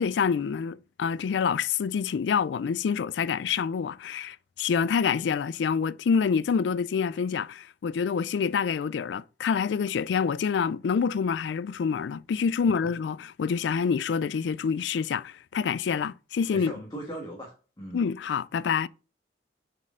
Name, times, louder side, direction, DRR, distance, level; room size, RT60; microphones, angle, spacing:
voice 1, 0.0-16.7 17.9-18.9, left 6 dB, 75° left, 0.3 m, -27 dB
voice 2, 16.5-18.0, right 1 dB, 25° left, 1.4 m, -39 dB
7.5 x 4.1 x 3.7 m
head